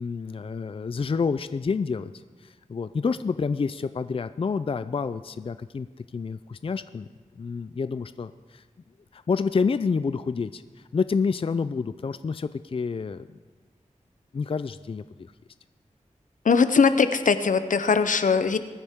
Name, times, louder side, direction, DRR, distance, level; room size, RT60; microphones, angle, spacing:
voice 1, 0.0-2.1 2.4-5.9 6.1-7.1 7.4-8.6 9.1-13.3 14.3-15.0, left 5 dB, 45° left, 12 dB, 0.4 m, -28 dB
voice 2, 16.4-18.6, left 5 dB, 80° left, 11 dB, 0.7 m, -20 dB
21.5 x 9.8 x 3.6 m, 1.4 s
wide cardioid pair, 65°, 13 cm